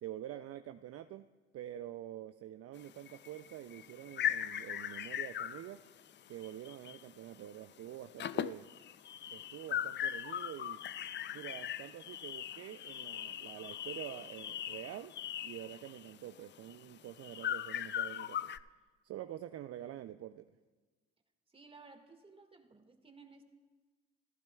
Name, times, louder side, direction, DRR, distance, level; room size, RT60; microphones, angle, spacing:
voice 1, 0.0-1.3 1.5-5.8 6.3-8.7 9.3-10.8 11.3-15.1 15.4-18.5 19.0-20.5, right 12 dB, 55° right, 10 dB, 0.5 m, -47 dB
sound 1, 2.8-7.1 7.4-7.6 7.9-18.6, left 10 dB, 40° left, 0.4 m, -40 dB
voice 2, 21.5-23.4, right 4 dB, 20° right, 4 dB, 1.9 m, -57 dB
15.0 x 14.5 x 2.3 m, 1.3 s
hypercardioid pair, 50°, 30 cm